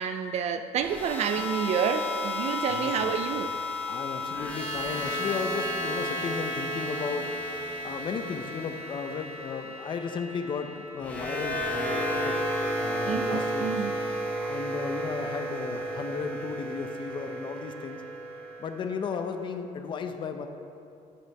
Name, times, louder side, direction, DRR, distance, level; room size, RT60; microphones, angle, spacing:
voice 1, 0.0-3.5 13.1-13.9, right 7 dB, 50° right, 9 dB, 0.4 m, -29 dB
sound 1, 0.8-19.0, equal, 10° left, 1.1 m, -33 dB
voice 2, 2.7-3.3 3.9-7.3 7.8-12.4 12.8-13.7 14.1-14.2 14.5-18.0 18.6-20.5, left 5 dB, 35° left, 7 dB, 0.6 m, -35 dB
11.0 x 7.5 x 3.4 m, 2.5 s
cardioid pair, 140°, 14 cm